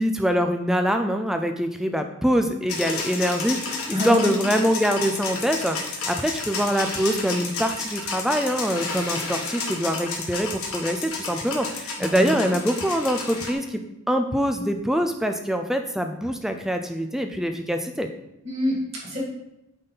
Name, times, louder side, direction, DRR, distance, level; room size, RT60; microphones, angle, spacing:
voice 1, 0.0-13.8 14.1-18.1, equal, ahead, 6 dB, 0.4 m, -24 dB
sound 1, 2.7-13.5, left 4 dB, 85° left, 1.4 m, -31 dB
voice 2, 3.9-4.3 12.0-12.5 18.4-19.2, left 1 dB, 30° right, -4 dB, 2.1 m, -27 dB
8.8 x 4.2 x 3.9 m, 0.85 s
head